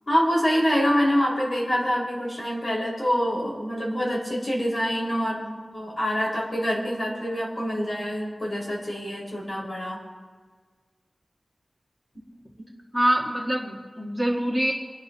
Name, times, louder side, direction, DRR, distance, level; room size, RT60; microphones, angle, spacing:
voice 1, 0.1-10.0 12.6-12.7, equal, 45° left, -4 dB, 5.4 m, -26 dB
voice 2, 12.9-14.7, equal, 5° right, -2 dB, 1.7 m, -24 dB
29.5 x 10.5 x 3.0 m, 1.5 s
wide cardioid pair, 90°, 0 cm